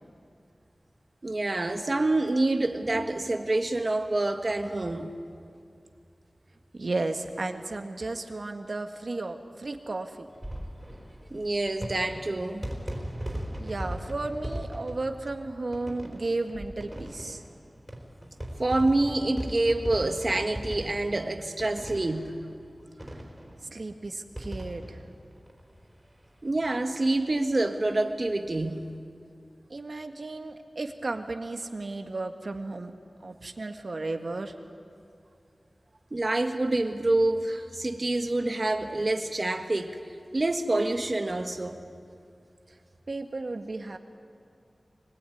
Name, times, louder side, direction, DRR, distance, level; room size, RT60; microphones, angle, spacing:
voice 1, 1.2-5.1 11.3-12.7 18.6-22.3 26.4-28.9 36.1-40.0 40.3-41.8, right 2 dB, 45° right, 5 dB, 1.6 m, -27 dB
voice 2, 6.8-10.3 13.6-17.4 23.7-25.0 29.7-32.9 33.2-34.5 43.1-44.0, right 2 dB, 60° right, 5 dB, 1.8 m, -34 dB
sound 1, 10.3-26.3 26.6-26.7 26.9-27.0 28.3-28.6, equal, 10° right, 4.2 m, -39 dB
24.5 x 21.0 x 9.4 m, 2.4 s
wide cardioid pair, 80°, 0 cm